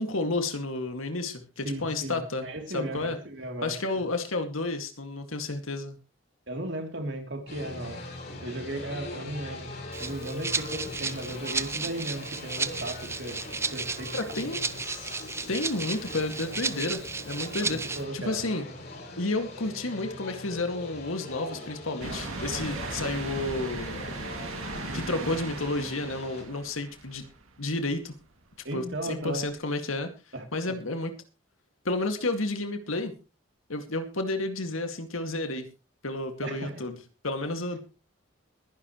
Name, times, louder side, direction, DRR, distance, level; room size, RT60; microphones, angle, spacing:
voice 1, 0.0-2.5 2.7-3.2 3.6-6.0 14.1-14.6 15.5-18.7 19.2-24.1 24.9-27.3 27.6-28.1 28.7-30.1 30.5-31.1 31.8-33.1 33.7-35.7 36.0-37.0 37.2-37.8, left 2 dB, 85° left, 6 dB, 2.2 m, -31 dB
voice 2, 1.6-3.7 6.5-8.0 8.4-9.7 10.0-13.4 13.7-14.6 17.6-18.4 28.6-29.5 30.3-30.8 36.4-36.7, right 1 dB, 55° right, 4 dB, 3.2 m, -36 dB
sound 1, 7.5-26.4, left 2 dB, 50° left, 7.8 m, -41 dB
Rattle (instrument), 9.9-18.0, right 4 dB, 15° right, 0.6 m, -34 dB
sound 2, 22.0-27.6 28.1-28.2 29.5-29.6, right 3 dB, 90° right, 2.5 m, -37 dB
22.0 x 10.5 x 3.1 m, 0.31 s
head